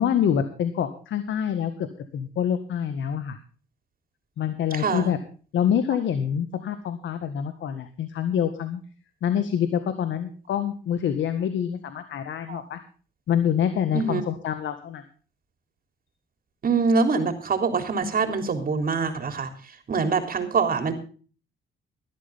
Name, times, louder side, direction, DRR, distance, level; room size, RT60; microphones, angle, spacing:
voice 1, 0.0-1.9 2.1-3.4 4.4-5.2 5.5-8.8 9.2-12.8 13.3-15.0, left 9 dB, 70° left, 9 dB, 1.8 m, -26 dB
voice 2, 4.7-5.1 12.5-12.6 13.9-14.2 16.6-20.9, right 4 dB, 45° right, 8 dB, 3.5 m, -24 dB
17.5 x 12.5 x 3.7 m, 0.39 s
cardioid pair, 90°, 20 cm